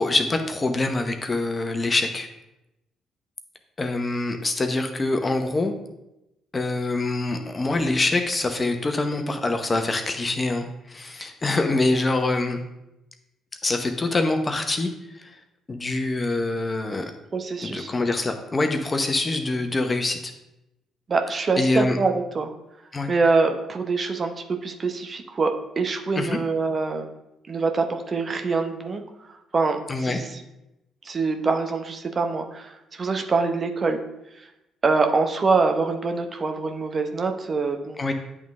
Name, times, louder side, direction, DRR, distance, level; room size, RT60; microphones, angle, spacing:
voice 1, 0.0-2.3 3.8-5.7 6.5-12.6 13.6-14.9 15.2-15.4 15.7-17.0 17.6-20.3 21.6-22.0 22.9-23.1 26.2-26.4 29.9-30.2 38.0-38.1, left 2 dB, 30° left, 5 dB, 0.8 m, -25 dB
voice 2, 17.3-17.9 21.1-22.5 23.1-27.1 27.5-30.4 31.0-34.0 34.3-34.5 34.8-38.0, right 4 dB, 40° right, 5 dB, 0.7 m, -25 dB
10.5 x 3.7 x 2.5 m, 0.91 s
hypercardioid pair, 45°, 0 cm